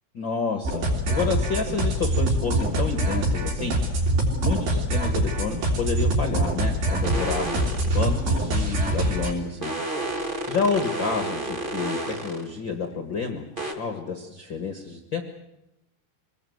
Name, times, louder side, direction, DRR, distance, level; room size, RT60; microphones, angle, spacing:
voice 1, 0.1-3.8 4.4-9.7 10.5-13.4 13.7-15.2, left 5 dB, 80° left, 5 dB, 1.0 m, -29 dB
sound 1, 0.6-9.3, right 1 dB, 75° right, 5.7 m, -24 dB
sound 2, 7.0-8.0 9.6-12.5 13.5-13.7, right 1 dB, 25° right, 1.2 m, -31 dB
24.5 x 20.0 x 7.9 m, 0.90 s
omnidirectional pair, 4.9 m